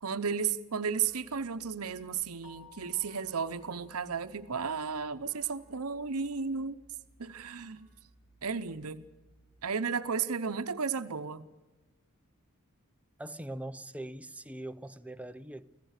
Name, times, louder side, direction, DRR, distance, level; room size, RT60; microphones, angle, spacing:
voice 1, 0.0-6.8 7.2-7.9 8.4-9.1 9.6-11.5, right 6 dB, 70° right, 0.8 m, -34 dB
sound 1, 0.9-9.6, right 1 dB, 50° left, 5.6 m, -64 dB
Keyboard (musical), 2.4-4.9, left 7 dB, 80° left, 3.5 m, -58 dB
voice 2, 13.2-15.7, right 1 dB, 5° right, 0.6 m, -42 dB
25.0 x 16.0 x 6.5 m
head